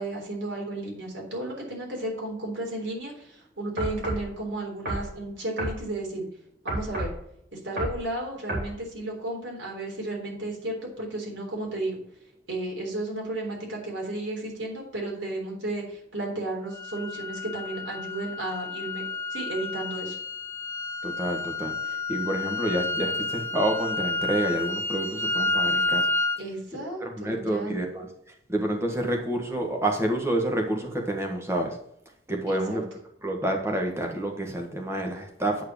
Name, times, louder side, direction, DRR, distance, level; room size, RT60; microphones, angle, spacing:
voice 1, 0.0-6.3 6.6-7.1 7.6-12.0 12.5-19.0 19.3-20.2 26.4-27.8 32.5-32.8, right 2 dB, 90° right, -2 dB, 3.7 m, -33 dB
sound 1, 3.8-4.3 4.9-5.1 5.6-5.8 6.7-7.2 7.8-8.0 8.5-8.7, right 1 dB, 55° right, 3.0 m, -30 dB
sound 2, 16.7-26.4, left 3 dB, 15° left, 0.5 m, -30 dB
voice 2, 21.0-26.1 26.7-28.1 28.5-31.8 32.3-32.8 33.2-35.6, right 1 dB, 15° right, 2 dB, 1.5 m, -28 dB
8.7 x 4.7 x 6.2 m, 0.74 s
head